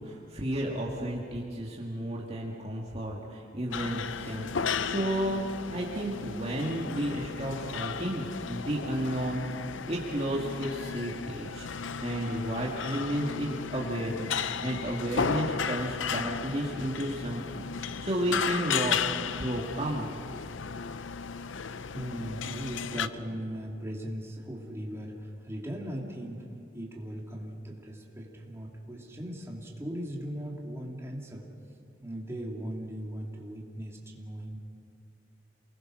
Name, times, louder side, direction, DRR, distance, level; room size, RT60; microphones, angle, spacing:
voice 1, 0.0-9.4 9.7-11.7 12.0-19.0 19.4-20.2, right 1 dB, 35° right, -3 dB, 2.1 m, -32 dB
sound 1, 3.7-23.1, left 6 dB, 85° left, 0.6 m, -35 dB
voice 2, 21.9-26.5 26.7-31.5 32.0-34.6, equal, 15° right, -2 dB, 2.8 m, -39 dB
28.5 x 20.5 x 6.3 m, 2.5 s
head